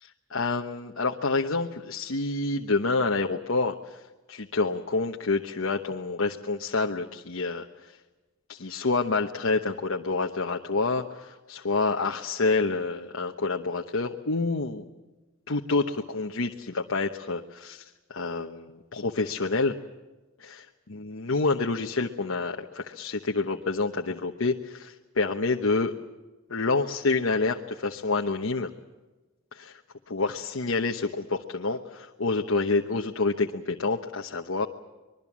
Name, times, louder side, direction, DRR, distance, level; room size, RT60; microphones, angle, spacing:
voice 1, 0.0-4.0 4.3-8.0 8.5-14.8 15.5-19.7 20.4-25.9 26.5-28.7 29.5-29.8 30.1-34.7, left 3 dB, 70° left, 3 dB, 1.1 m, -28 dB
25.0 x 22.0 x 7.4 m, 1.2 s
head